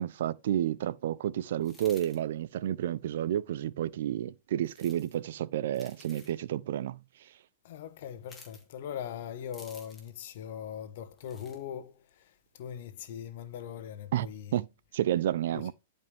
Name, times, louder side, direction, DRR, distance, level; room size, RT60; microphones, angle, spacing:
voice 1, 0.0-7.3 14.1-14.3 14.5-14.7 14.9-15.7, right 11 dB, 65° right, 0.6 m, -31 dB
sound 1, 1.6-2.2 4.6-5.2 5.7-6.4 8.2-8.6 9.5-10.2 11.2-11.6, left 3 dB, 10° left, 2.8 m, -53 dB
voice 2, 7.6-14.6 15.5-15.6, left 9 dB, 60° left, 1.4 m, -41 dB
11.0 x 5.3 x 3.5 m
hypercardioid pair, 145°, 0 cm